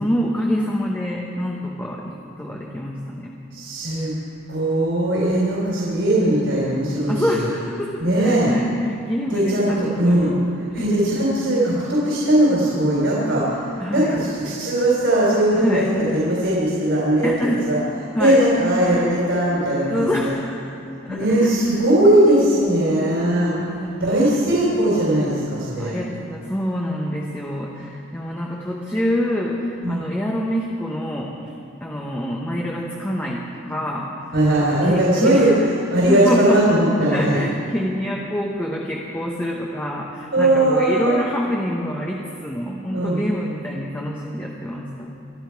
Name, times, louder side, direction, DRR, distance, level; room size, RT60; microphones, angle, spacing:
voice 1, 0.0-3.3 7.1-10.4 10.8-10.9 13.8-14.2 15.5-15.9 17.2-17.7 18.1-18.4 19.9-21.5 23.6-24.5 25.8-31.3 31.8-34.1 34.6-35.5 36.1-36.6 37.1-45.1, equal, 10° left, -3 dB, 1.2 m, -26 dB
voice 2, 3.5-4.1 4.5-7.5 8.0-8.5 9.3-17.3 17.7-17.8 18.2-20.3 21.1-23.5 24.0-26.0 29.8-30.1 34.3-35.5 35.9-37.4 40.3-41.2 42.9-43.2, right 1 dB, 60° right, -6 dB, 3.7 m, -19 dB
24.0 x 12.5 x 4.7 m, 2.7 s
head